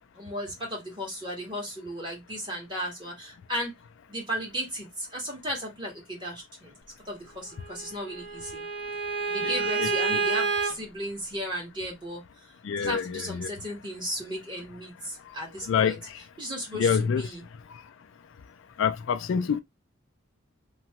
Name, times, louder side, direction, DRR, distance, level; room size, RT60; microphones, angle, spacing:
voice 1, 0.1-3.7 4.1-6.7 7.0-8.6 9.3-12.2 12.8-16.0 16.4-17.4, equal, 20° right, 1.4 m, -35 dB
Bowed string instrument, 7.6-10.7, right 5 dB, 55° right, 1.3 m, -29 dB
voice 2, 9.4-9.9 12.6-13.5 15.7-16.0 16.8-17.2 18.8-19.6, left 7 dB, 60° left, 0.3 m, -26 dB
2.9 x 2.3 x 2.8 m
head